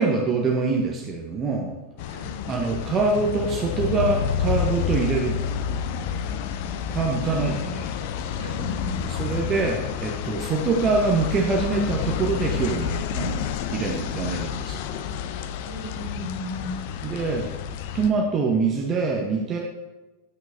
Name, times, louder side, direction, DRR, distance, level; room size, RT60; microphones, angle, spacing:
voice 1, 0.0-1.7 2.5-5.5 6.9-7.6 9.1-13.4 13.7-14.8 17.0-17.5 17.9-19.6, right 4 dB, 25° right, 0 dB, 0.8 m, -24 dB
sound 1, 2.0-18.1, left 7 dB, 50° left, 0.4 m, -29 dB
voice 2, 7.2-7.7 8.4-9.1 15.6-16.8, left 1 dB, 65° right, -4 dB, 2.4 m, -35 dB
9.5 x 6.0 x 2.6 m, 1.1 s
figure-of-eight pair, 90°, 0 cm